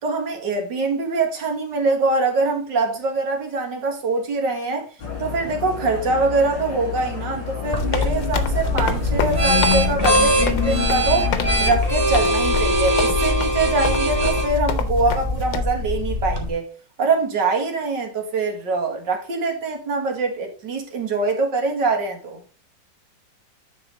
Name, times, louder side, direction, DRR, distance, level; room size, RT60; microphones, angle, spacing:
voice 1, 0.0-4.8 5.2-11.3 11.6-16.7 17.0-22.4, right 3 dB, 70° right, 2.3 m, -23 dB
sound 1, 5.0-11.8, left 9 dB, 70° left, 2.9 m, -29 dB
sound 2, 7.6-15.6, left 6 dB, 85° left, 1.6 m, -28 dB
sound 3, 7.7-16.5, equal, 20° right, 1.4 m, -22 dB
10.0 x 4.3 x 3.9 m
omnidirectional pair, 2.0 m